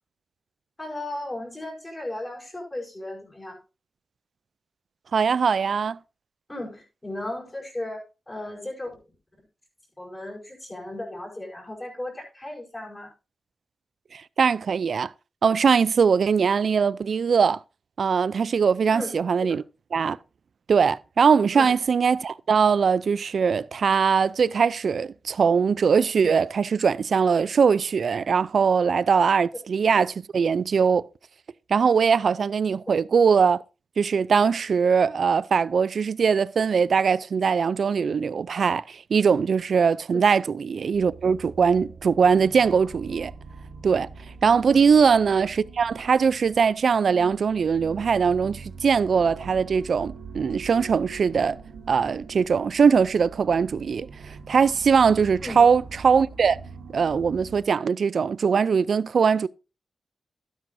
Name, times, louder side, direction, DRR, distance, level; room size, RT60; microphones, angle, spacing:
voice 1, 0.8-3.6 6.5-9.0 10.0-13.1 18.9-19.2 19.5-19.6 21.5-21.7 40.1-40.2 44.7-44.9 55.4-55.6, left 1 dB, 25° left, 5.5 m, -36 dB
voice 2, 5.1-6.0 14.1-15.1 15.4-17.6 18.0-19.6 19.9-20.2 20.7-31.0 31.7-33.6 34.0-43.3 43.8-44.1 44.4-51.6 51.9-56.6 56.9-59.5, right 6 dB, 65° right, 0.4 m, -21 dB
sound 1, 40.9-57.6, right 4 dB, 85° right, 1.8 m, -43 dB
12.0 x 10.0 x 2.6 m
cardioid pair, 50°, 0 cm